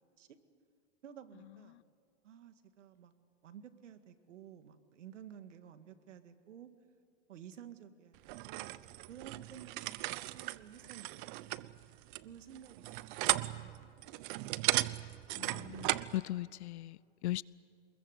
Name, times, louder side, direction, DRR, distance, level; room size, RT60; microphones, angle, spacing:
voice 1, 1.0-1.8 2.2-3.1 3.4-6.7 7.3-8.8 9.1-11.4 11.8-11.9 12.2-14.4, right 9 dB, 85° right, 2.0 m, -53 dB
Metal softly handling objects, 8.3-16.2, right 18 dB, 45° right, 0.8 m, -36 dB
voice 2, 15.3-17.4, left 16 dB, 65° left, 0.6 m, -39 dB
27.5 x 21.5 x 8.2 m
hypercardioid pair, 135°, 36 cm